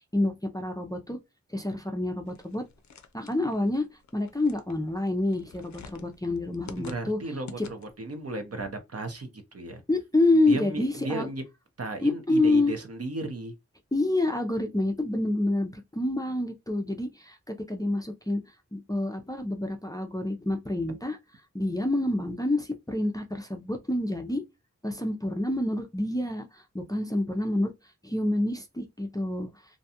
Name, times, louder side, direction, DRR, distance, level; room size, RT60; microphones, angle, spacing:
voice 1, 0.1-1.2 1.5-2.6 3.1-3.9 4.1-7.2 7.6-7.7 9.9-11.3 12.0-12.7 13.9-18.4 18.7-21.2 21.5-24.4 24.8-27.7 28.0-29.5, left 2 dB, 15° left, 0.4 m, -27 dB
sound 1, 2.3-8.1, left 5 dB, 70° left, 0.4 m, -49 dB
voice 2, 6.8-9.8 10.3-11.4 11.8-13.5, right 2 dB, 55° right, 0.7 m, -35 dB
2.6 x 2.3 x 2.7 m
wide cardioid pair, 45°, 29 cm